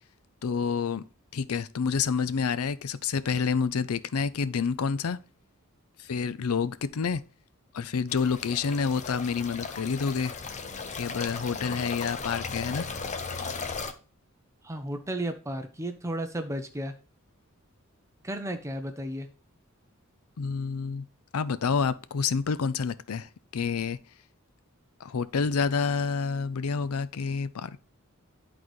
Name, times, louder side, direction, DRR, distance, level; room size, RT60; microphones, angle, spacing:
voice 1, 0.4-1.0 1.3-5.2 6.0-7.2 7.7-10.3 11.0-12.9 20.4-21.1 21.3-24.0 25.0-27.8, left 5 dB, 85° left, 0.5 m, -28 dB
sound 1, 8.1-13.9, left 4 dB, 35° left, 0.7 m, -36 dB
voice 2, 14.6-16.9 18.2-19.3, right 1 dB, 15° right, 0.6 m, -33 dB
11.0 x 4.0 x 3.1 m
head